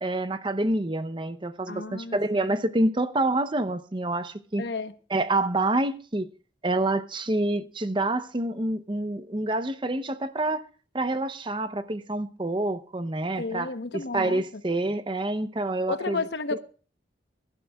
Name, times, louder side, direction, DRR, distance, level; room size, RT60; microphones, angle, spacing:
voice 1, 0.0-4.6 5.1-6.3 6.6-10.7 10.9-13.7 14.1-16.2, right 2 dB, 30° right, 0.8 m, -27 dB
voice 2, 1.7-2.2 4.6-4.9 13.4-14.4 15.9-16.6, left 3 dB, 75° left, 1.0 m, -32 dB
24.0 x 11.5 x 2.3 m
head